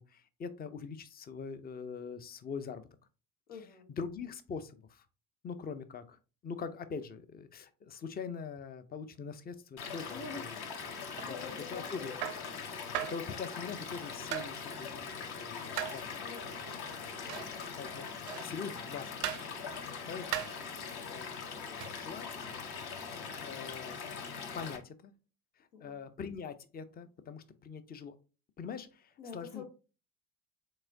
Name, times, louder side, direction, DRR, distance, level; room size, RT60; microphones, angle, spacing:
voice 1, 0.0-2.9 4.0-5.0 5.4-10.5 11.2-12.1 13.1-16.1 17.0-17.5 17.8-19.4 19.8-20.4 21.1-21.4 21.9-22.6 23.4-24.0 24.5-25.1 25.6-28.1 28.6-29.6, left 5 dB, 20° left, 12 dB, 0.5 m, -43 dB
voice 2, 3.5-3.9 10.1-10.6 11.1-12.3 16.2-16.6 17.2-17.7 21.7-22.1 25.7-26.0 29.2-29.6, left 4 dB, 75° left, 1 dB, 1.7 m, -47 dB
Stream / Liquid, 9.8-24.8, left 5 dB, 50° left, 1.1 m, -42 dB
sound 1, 11.2-11.4 12.2-12.5 12.9-13.2 14.3-14.6 15.8-16.0 17.3-17.6 18.3-18.6 19.2-19.5 20.3-20.6 21.8-22.0, right 12 dB, 75° right, 0.7 m, -37 dB
4.7 x 3.7 x 2.7 m, 0.33 s
hypercardioid pair, 65°, 48 cm